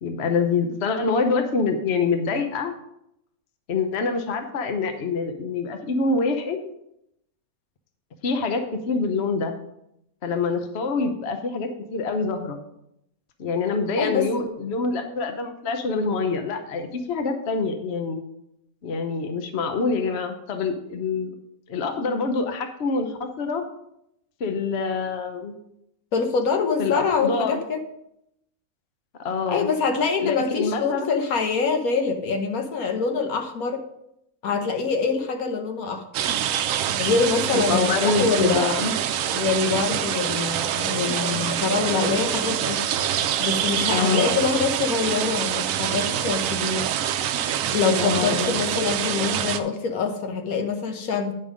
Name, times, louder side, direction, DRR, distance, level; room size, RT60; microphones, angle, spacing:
voice 1, 0.0-2.7 3.7-6.6 8.2-9.5 10.2-12.6 13.4-18.2 18.8-21.3 21.7-23.6 24.4-25.5 26.8-27.6 29.2-29.7 30.2-31.3 37.5-38.9 43.9-44.4 48.0-48.6, left 4 dB, 50° left, 6 dB, 1.0 m, -25 dB
voice 2, 14.0-14.3 26.1-27.8 29.5-33.8 34.4-36.0 37.0-38.7 39.3-42.8 43.4-46.9 47.7-51.3, left 5 dB, 75° left, 5 dB, 1.5 m, -25 dB
sound 1, 36.1-49.6, right 10 dB, 70° right, 0.9 m, -25 dB
9.9 x 5.4 x 5.1 m, 0.79 s
omnidirectional pair, 1.5 m